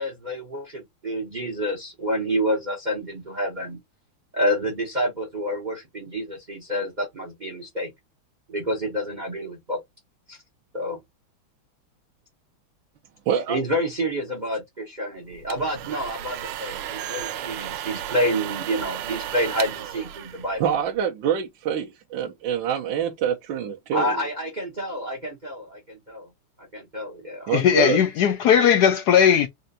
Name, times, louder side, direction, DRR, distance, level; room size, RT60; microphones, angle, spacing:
voice 1, 0.0-3.8 4.3-7.9 8.5-9.8 10.3-10.4 10.7-11.0 13.5-20.6 23.9-26.3 26.6-27.7, equal, 40° right, 0.6 m, -28 dB
voice 2, 13.3-13.6 20.6-24.2 27.5-28.0, right 8 dB, 70° right, 1.3 m, -25 dB
sound 1, 15.3-21.0, right 11 dB, 85° right, 1.5 m, -34 dB
voice 3, 27.5-29.5, left 8 dB, 75° left, 0.9 m, -18 dB
4.5 x 2.5 x 2.6 m
omnidirectional pair, 2.3 m